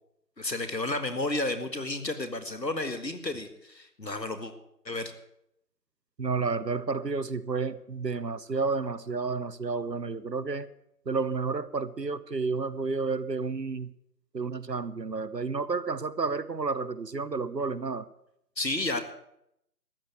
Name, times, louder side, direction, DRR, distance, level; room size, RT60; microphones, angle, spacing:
voice 1, 0.4-4.5 4.9-5.1 18.6-19.0, left 2 dB, 80° left, 9 dB, 2.0 m, -32 dB
voice 2, 6.2-10.7 11.1-13.9 14.3-18.0, right 4 dB, 80° right, 16 dB, 1.0 m, -31 dB
13.5 x 8.4 x 7.9 m, 0.78 s
figure-of-eight pair, 170°, 49 cm